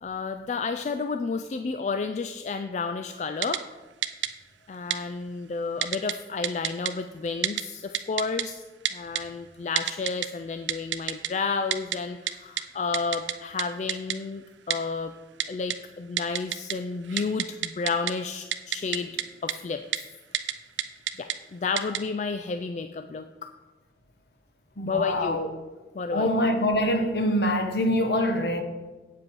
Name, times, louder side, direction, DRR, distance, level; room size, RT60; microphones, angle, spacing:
voice 1, 0.0-3.6 4.7-8.6 8.9-15.1 15.5-19.1 19.4-19.8 20.3-20.4 21.2-23.5 24.9-25.4 25.9-26.3, left 4 dB, 40° left, 0.3 m, -31 dB
Typing, 3.4-3.6 4.0-4.3 4.9-5.0 5.8-6.1 6.4-6.9 7.4-7.6 7.9-8.4 8.8-9.2 9.8-10.3 10.7-11.3 11.7-12.0 12.3-12.4 12.6-12.7 12.9-13.3 13.6-13.7 13.9-14.2 14.7-14.8 15.4-15.8 16.2-16.7 17.0-18.1 18.5-19.2 19.5-19.6 19.9-20.0 20.3-20.5 20.8-21.3 21.8-22.0, right 11 dB, 85° right, 0.5 m, -27 dB
voice 2, 24.8-25.5 26.1-28.6, left 1 dB, 60° left, 1.0 m, -24 dB
8.7 x 7.5 x 4.6 m
head